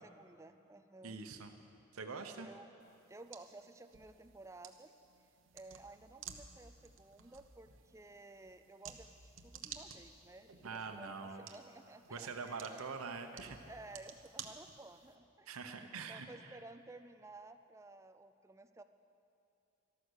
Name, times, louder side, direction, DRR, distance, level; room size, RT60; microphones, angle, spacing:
voice 1, 0.0-1.2 2.4-2.7 3.1-5.0 5.5-12.9 13.7-15.5 15.9-18.8, right 2 dB, 15° right, 9 dB, 0.4 m, -55 dB
voice 2, 1.0-1.5 1.9-2.5 10.6-11.5 12.1-13.6 15.5-16.6, right 4 dB, 90° right, 6 dB, 0.9 m, -44 dB
sound 1, 2.8-15.1, right 7 dB, 65° right, 1.0 m, -54 dB
13.0 x 13.0 x 6.4 m, 2.8 s
head